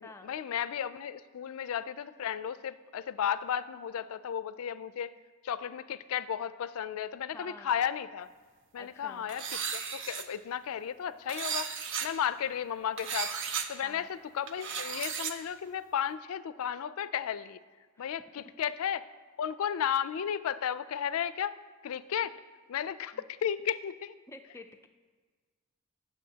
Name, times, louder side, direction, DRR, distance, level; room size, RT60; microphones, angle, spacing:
voice 1, 0.0-5.1 5.4-8.3 8.7-11.7 12.0-17.6 18.0-19.1 19.4-21.6 21.8-22.3 22.7-24.1, left 8 dB, 75° left, 15 dB, 0.4 m, -34 dB
voice 2, 7.3-7.7 8.8-9.3 13.8-14.1 18.0-18.1 23.1-23.2 24.3-24.9, left 2 dB, 10° left, 6 dB, 0.4 m, -49 dB
sound 1, 9.3-10.2 11.3-12.1 13.0-13.7 14.5-15.3, right 6 dB, 60° right, 0.6 m, -35 dB
16.5 x 6.9 x 2.8 m, 1.4 s
head